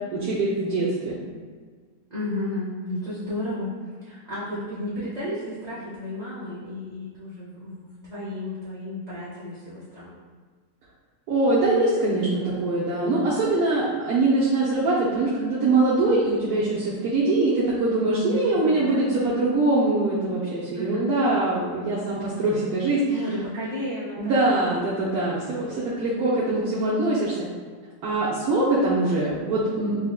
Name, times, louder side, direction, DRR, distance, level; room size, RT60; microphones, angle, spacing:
voice 1, 0.1-1.2 11.3-23.2 24.2-27.5 28.0-30.0, right 2 dB, 75° right, -8 dB, 1.1 m, -23 dB
voice 2, 2.1-3.7 4.0-10.1 18.1-19.1 20.7-21.1 23.1-24.5, left 1 dB, 40° right, -10 dB, 0.6 m, -33 dB
5.6 x 2.1 x 2.3 m, 1.5 s
omnidirectional pair, 1.6 m